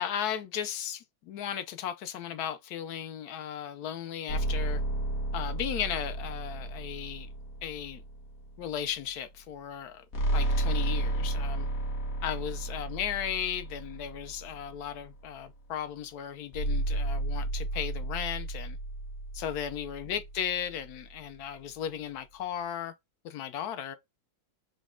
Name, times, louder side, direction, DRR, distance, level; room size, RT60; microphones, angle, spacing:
voice 1, 0.0-4.8 5.3-7.3 7.6-8.0 8.6-10.1 10.3-11.7 12.2-18.8 19.3-23.0 23.2-24.0, left 9 dB, 70° left, 1.0 m, -36 dB
sound 1, 4.3-8.7 10.1-15.0 16.5-20.9, right 1 dB, 50° left, 1.6 m, -33 dB
5.2 x 2.2 x 3.6 m
omnidirectional pair, 2.1 m